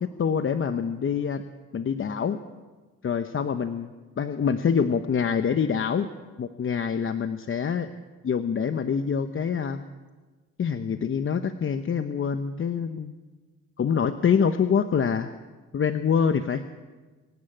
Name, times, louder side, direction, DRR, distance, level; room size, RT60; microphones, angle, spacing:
voice 1, 0.0-1.4 1.7-2.4 3.0-3.9 4.2-6.1 6.4-7.9 8.2-9.8 10.6-13.1 13.8-15.3 15.7-16.6, left 6 dB, 45° left, 9 dB, 1.0 m, -25 dB
25.5 x 11.5 x 8.8 m, 1.3 s
cardioid pair, 90°, 30 cm